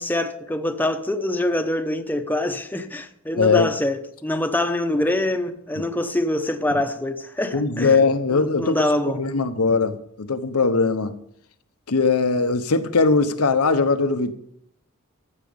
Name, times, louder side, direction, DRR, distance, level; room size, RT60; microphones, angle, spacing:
voice 1, 0.0-8.0 8.3-9.3, left 1 dB, 10° left, 0.8 m, -25 dB
voice 2, 3.4-3.7 7.5-8.9 9.1-11.1 11.9-14.3, left 4 dB, 85° left, 1.0 m, -20 dB
14.5 x 7.6 x 5.3 m
head